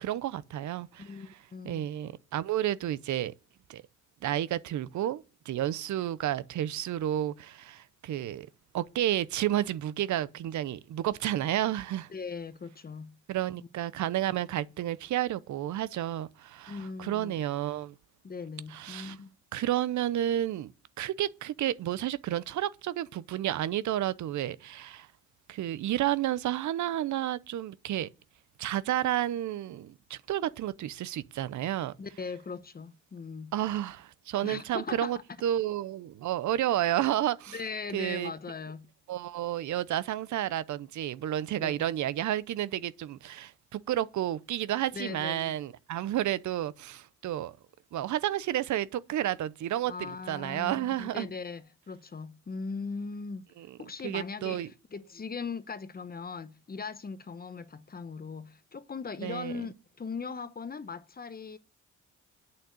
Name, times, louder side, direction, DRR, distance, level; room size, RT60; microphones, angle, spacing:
voice 1, 0.0-1.1 1.6-3.3 3.7-3.8 4.2-8.5 8.7-12.1 13.3-17.9 18.7-19.2 19.5-20.7 21.0-25.1 25.5-28.1 28.6-31.9 33.5-37.6 37.9-38.3 39.1-47.5 47.9-51.3 53.6-53.8 54.0-54.7 59.2-59.5, right 12 dB, 70° right, 0.7 m, -31 dB
voice 2, 1.0-1.9 12.1-13.1 13.6-13.7 16.7-17.4 18.2-19.3 32.0-33.5 34.4-35.1 37.5-38.9 41.5-41.9 44.9-45.5 49.9-53.5 53.8-61.6, left 5 dB, 30° left, 1.0 m, -39 dB
8.7 x 6.5 x 8.1 m
cardioid pair, 80°, 30 cm